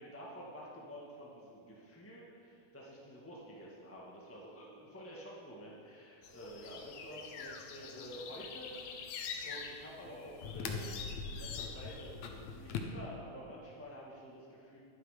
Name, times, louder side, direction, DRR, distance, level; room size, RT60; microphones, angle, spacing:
voice 1, 0.0-9.1 9.4-14.8, equal, 10° left, -5 dB, 0.7 m, -49 dB
sound 1, 6.2-12.8, left 5 dB, 70° left, 2.0 m, -43 dB
12.0 x 11.5 x 5.1 m, 2.6 s
omnidirectional pair, 3.6 m